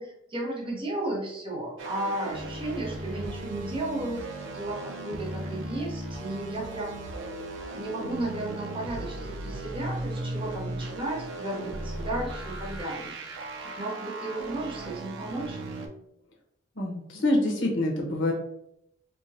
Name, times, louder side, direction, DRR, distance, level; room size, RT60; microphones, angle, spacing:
voice 1, 0.0-7.0 7.7-13.1 13.8-15.6, right 2 dB, 30° right, -3 dB, 0.9 m, -34 dB
sound 1, 1.8-15.9, right 1 dB, 80° right, 0.6 m, -37 dB
voice 2, 16.8-18.3, left 1 dB, 75° left, -1 dB, 1.0 m, -26 dB
4.6 x 2.2 x 2.7 m, 0.79 s
head